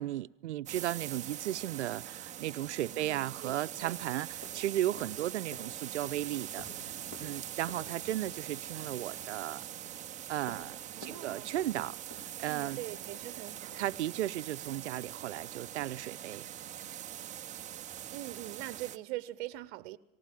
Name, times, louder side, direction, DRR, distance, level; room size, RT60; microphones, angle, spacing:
voice 1, 0.0-6.7 7.2-9.7 10.3-10.8 11.0-12.8 13.8-16.5, right 13 dB, 70° right, 0.8 m, -35 dB
sound 1, 0.7-19.0, right 11 dB, 20° right, 0.8 m, -43 dB
voice 2, 2.9-4.1 10.9-11.6 12.5-13.8 18.1-20.0, right 16 dB, 45° right, 1.1 m, -43 dB
sound 2, 3.3-14.4, left 2 dB, 35° left, 5.5 m, -55 dB
19.0 x 18.5 x 7.6 m
hypercardioid pair, 120°, 36 cm